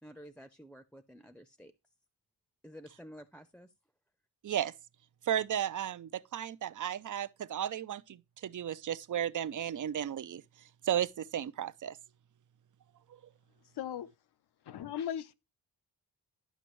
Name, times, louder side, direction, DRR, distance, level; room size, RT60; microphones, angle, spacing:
voice 1, 0.0-1.7 2.6-3.7, equal, 5° left, 0.7 m, -51 dB
voice 2, 5.2-10.4 10.8-12.0, right 10 dB, 50° right, 0.6 m, -34 dB
voice 3, 13.8-14.1 14.7-15.3, left 9 dB, 75° left, 0.8 m, -37 dB
11.0 x 6.0 x 3.1 m
cardioid pair, 70°, 39 cm